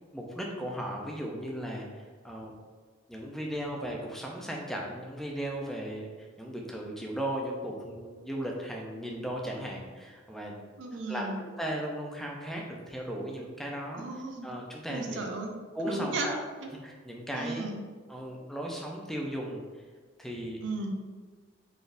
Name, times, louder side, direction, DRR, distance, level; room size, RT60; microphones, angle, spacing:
voice 1, 0.1-2.5 3.1-10.6 10.9-14.1 14.4-15.2 15.7-16.4 16.8-17.7 18.1-19.6 20.2-20.6, right 1 dB, ahead, -1 dB, 0.4 m, -36 dB
voice 2, 10.8-11.4 13.9-14.5 14.9-15.5 15.8-16.3 16.6-16.7 17.3-17.8 20.6-20.9, right 2 dB, 65° right, 3 dB, 0.5 m, -35 dB
4.1 x 3.4 x 2.5 m, 1.5 s
head